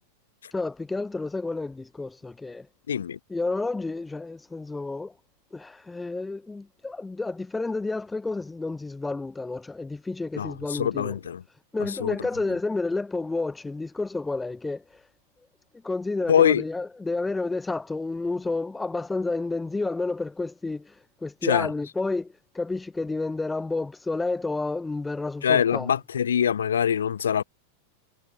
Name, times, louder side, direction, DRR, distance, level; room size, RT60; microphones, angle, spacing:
voice 1, 0.5-2.7 3.3-5.1 5.5-11.2 11.7-14.8 15.8-20.9 21.2-25.9, left 3 dB, 10° left, 0.4 m, -30 dB
voice 2, 2.9-3.2 10.4-11.4 12.0-12.2 16.3-16.6 21.4-21.7 25.4-27.4, left 8 dB, 65° left, 0.5 m, -23 dB
figure-of-eight pair, 90°, 0 cm